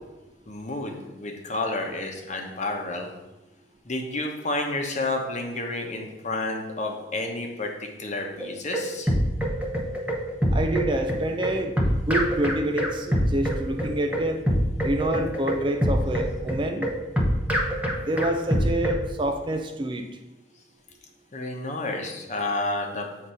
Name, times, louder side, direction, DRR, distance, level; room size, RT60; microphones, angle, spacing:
voice 1, 0.5-3.1 3.8-9.1 21.3-23.1, left 2 dB, 40° left, 2 dB, 1.0 m, -30 dB
sound 1, 8.4-19.0, equal, 5° right, 0.9 m, -25 dB
voice 2, 10.5-14.4 14.8-16.9 18.1-20.0, right 1 dB, 25° right, 5 dB, 0.5 m, -27 dB
7.8 x 3.8 x 5.6 m, 1.0 s
head